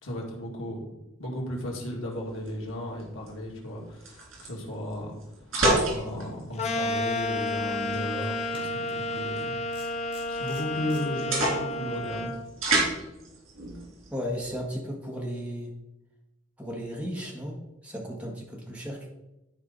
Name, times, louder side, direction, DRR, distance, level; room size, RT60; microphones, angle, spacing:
voice 1, 0.0-0.8 1.2-5.2 5.8-9.6 10.3-12.3, left 1 dB, 80° left, -2 dB, 2.2 m, -35 dB
sound 1, 2.1-14.6, right 2 dB, 85° right, 3.4 m, -32 dB
sound 2, 6.6-12.4, left 2 dB, 30° left, 0.8 m, -31 dB
sound 3, 8.5-9.0 9.7-11.5, right 2 dB, 25° right, 2.4 m, -51 dB
voice 2, 14.1-15.7 16.6-19.1, equal, 5° right, -1 dB, 1.6 m, -35 dB
12.0 x 4.8 x 4.0 m, 0.95 s
head